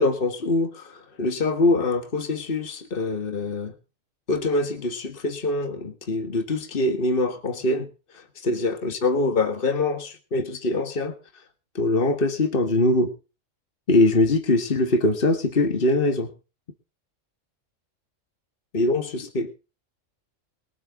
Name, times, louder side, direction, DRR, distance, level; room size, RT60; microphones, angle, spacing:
voice 1, 0.0-3.7 4.3-7.9 8.4-11.1 11.7-13.1 13.9-16.3 18.7-19.7, left 2 dB, 45° left, 7 dB, 1.8 m, -23 dB
22.0 x 8.6 x 3.6 m, 0.32 s
omnidirectional pair, 1.3 m